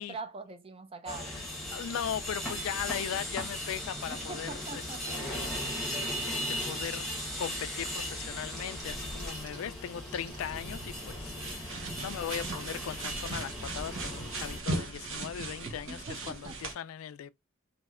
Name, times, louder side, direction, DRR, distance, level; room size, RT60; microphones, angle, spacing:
voice 1, 0.0-1.4 4.1-5.2 15.9-16.6, right 3 dB, 30° right, 0.4 m, -43 dB
sound 1, 1.1-14.6, left 1 dB, ahead, 1.1 m, -37 dB
voice 2, 1.7-4.8 5.1-5.9 6.2-7.1 7.4-17.3, left 9 dB, 90° left, 0.3 m, -38 dB
Crackle, 4.2-10.4, right 2 dB, 45° right, 1.5 m, -53 dB
sound 2, 10.3-16.7, right 2 dB, 70° right, 0.9 m, -38 dB
3.1 x 2.6 x 2.4 m
head